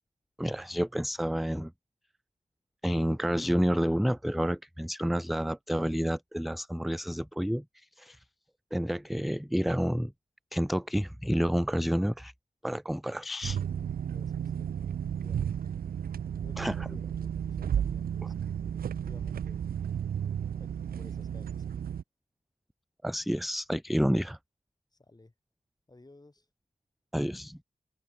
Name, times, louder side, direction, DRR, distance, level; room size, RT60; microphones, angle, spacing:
voice 1, 0.4-1.7 2.8-8.2 8.7-10.1 10.5-12.3 12.6-13.6 16.6-16.7 23.0-24.4 27.1-27.6, equal, ahead, 0.5 m, -29 dB
sound 1, 13.4-22.0, right 8 dB, 85° right, 0.4 m, -33 dB
voice 2, 14.0-15.7 16.4-19.7 20.6-21.8 24.9-25.3 25.9-26.5, left 2 dB, 25° left, 5.4 m, -56 dB
open air
wide cardioid pair, 90°, 15 cm